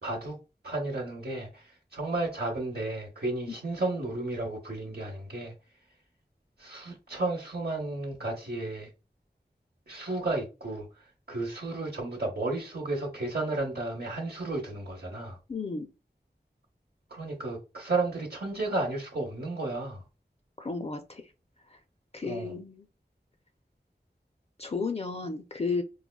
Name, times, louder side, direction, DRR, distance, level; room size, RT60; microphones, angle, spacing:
voice 1, 0.0-0.4 0.6-5.5 6.6-8.9 9.9-15.4 17.1-20.0 22.2-22.5, right 2 dB, 65° right, 0.8 m, -33 dB
voice 2, 15.5-15.9 20.6-21.2 21.7-21.8 22.1-22.9 24.6-25.8, left 4 dB, 35° left, 0.4 m, -33 dB
4.6 x 2.2 x 2.2 m
wide cardioid pair, 45°, 18 cm